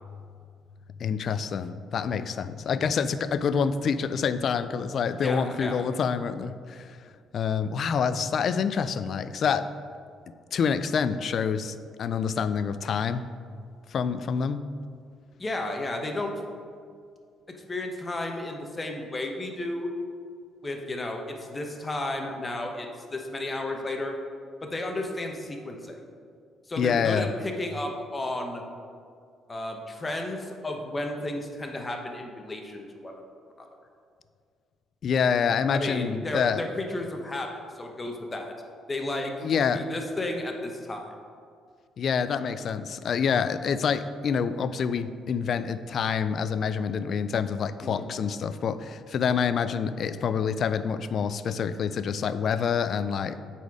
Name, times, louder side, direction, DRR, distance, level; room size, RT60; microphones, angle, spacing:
voice 1, 1.0-7.0 7.3-9.7 10.5-13.3 13.9-14.7 26.8-27.3 35.0-36.6 39.4-39.8 42.0-53.4, left 6 dB, 55° left, 13 dB, 0.3 m, -27 dB
voice 2, 5.2-5.8 15.4-16.3 17.7-19.9 20.6-24.1 24.6-26.0 26.7-28.6 29.5-33.2 33.6-33.7 35.7-38.5 38.9-39.4 39.7-41.1 47.8-48.1, left 1 dB, 25° left, 3 dB, 1.0 m, -33 dB
8.1 x 4.3 x 4.8 m, 2.2 s
cardioid pair, 95°, 0 cm